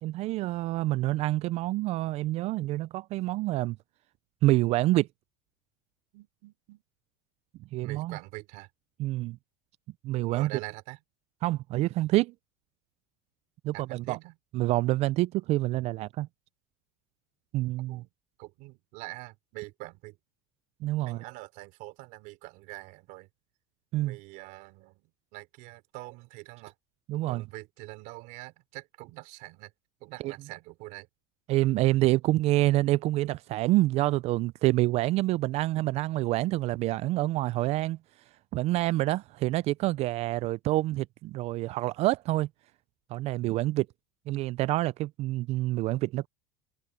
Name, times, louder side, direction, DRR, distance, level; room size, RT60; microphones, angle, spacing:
voice 1, 0.0-3.8 4.4-5.1 7.7-8.2 9.0-9.4 10.0-10.5 11.4-12.3 13.6-14.2 14.5-16.3 17.5-18.0 20.8-21.2 23.9-24.2 27.1-27.4 30.2-30.3 31.5-38.0 38.5-42.5 43.1-43.9 44.3-46.3, right 17 dB, 45° right, 0.4 m, -27 dB
voice 2, 6.1-6.8 7.8-8.7 10.3-11.0 13.7-14.3 17.9-18.1 18.4-20.2 21.0-23.3 24.0-26.7 27.3-29.7 30.0-31.1, right 22 dB, 60° right, 3.4 m, -44 dB
supercardioid pair, 125°, 15 cm